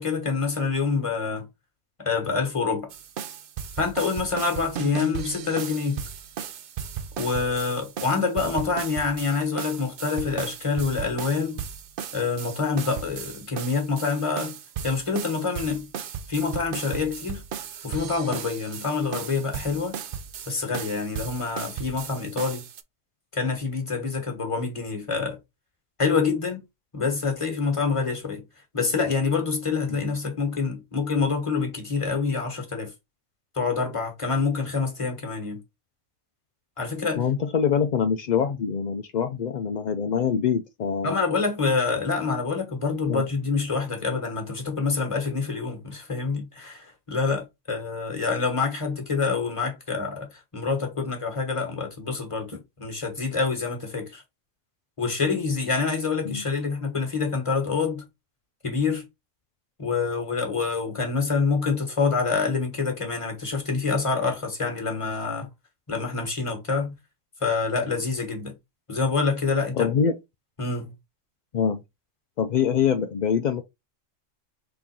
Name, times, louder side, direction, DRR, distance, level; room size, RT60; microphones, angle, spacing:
voice 1, 0.0-1.5 2.0-2.9 3.8-6.0 7.2-11.6 12.1-14.6 14.8-15.9 16.3-17.4 17.8-20.0 20.5-22.6 23.3-25.4 26.0-26.6 26.9-28.4 28.7-32.9 33.5-35.6 36.8-37.2 41.0-54.2 55.0-58.0 58.6-59.1 59.8-65.5 65.9-67.0 67.4-68.5 68.9-69.9 70.6-70.9, left 4 dB, 25° left, 1.4 m, -26 dB
sound 1, 2.9-22.8, right 8 dB, 60° right, 0.6 m, -36 dB
voice 2, 37.2-41.2 43.1-43.2 56.2-56.4 69.8-70.2 71.5-71.8 72.4-73.6, left 7 dB, 60° left, 0.4 m, -24 dB
3.7 x 3.3 x 4.2 m
omnidirectional pair, 1.3 m